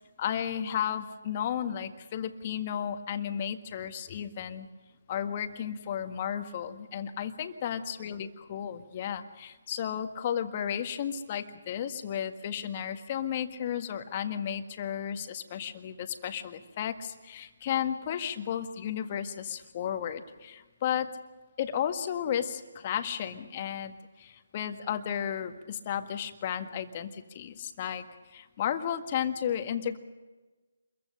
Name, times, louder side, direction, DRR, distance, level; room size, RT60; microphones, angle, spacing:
voice 1, 0.2-4.7 5.1-21.1 21.6-30.0, left 9 dB, 35° left, 8 dB, 1.7 m, -33 dB
27.0 x 22.5 x 6.7 m, 1.2 s
figure-of-eight pair, 145°, 0 cm